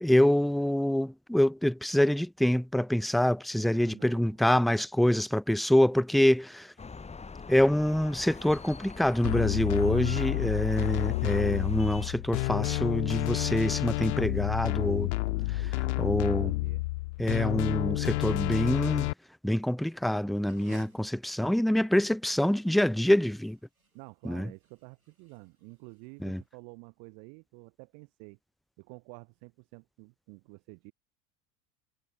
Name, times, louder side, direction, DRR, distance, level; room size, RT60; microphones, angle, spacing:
voice 1, 0.0-6.7 7.5-15.1 16.0-16.5 17.2-19.1 19.4-23.6 24.2-24.5 26.2-26.4, left 1 dB, ahead, 0.5 m, -26 dB
voice 2, 3.6-4.4 10.1-10.7 15.2-16.8 21.3-21.9 23.9-28.4 28.8-30.9, right 40 dB or more, 55° right, 3.0 m, -50 dB
sound 1, 6.8-12.1, left 4 dB, 15° left, 2.7 m, -44 dB
sound 2, 9.2-19.1, left 21 dB, 55° left, 0.5 m, -30 dB
sound 3, 20.3-26.5, right 3 dB, 90° right, 4.9 m, -58 dB
figure-of-eight pair, 75°, 41 cm